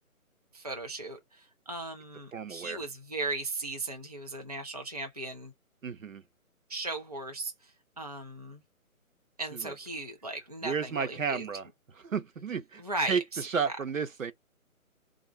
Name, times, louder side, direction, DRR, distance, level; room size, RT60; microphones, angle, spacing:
voice 1, 0.5-5.5 6.7-8.6 9.4-11.4 12.8-13.8, right 2 dB, 30° right, 0.6 m, -37 dB
voice 2, 2.3-2.8 5.8-6.2 9.5-9.7 10.6-11.7 12.0-12.8 13.1-14.3, right 6 dB, 65° right, 0.8 m, -32 dB
3.3 x 2.5 x 4.4 m
hypercardioid pair, 170°, 43 cm